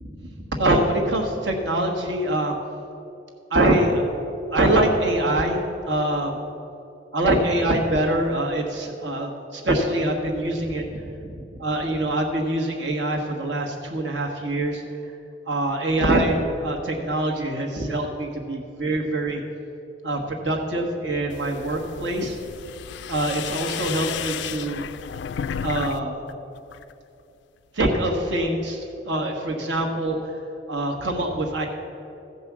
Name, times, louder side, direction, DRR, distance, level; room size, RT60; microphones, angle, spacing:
voice 1, 0.0-2.6 3.5-4.0 4.5-6.4 7.1-11.0 11.6-14.8 15.5-19.4 20.0-22.4 23.1-24.8 25.6-26.1 27.7-30.2 30.7-31.7, right 1 dB, 75° right, 1 dB, 1.6 m, -24 dB
sound 1, 21.3-26.0 26.3-26.9, left 8 dB, 70° left, 0.4 m, -33 dB
14.5 x 5.4 x 7.4 m, 2.7 s
head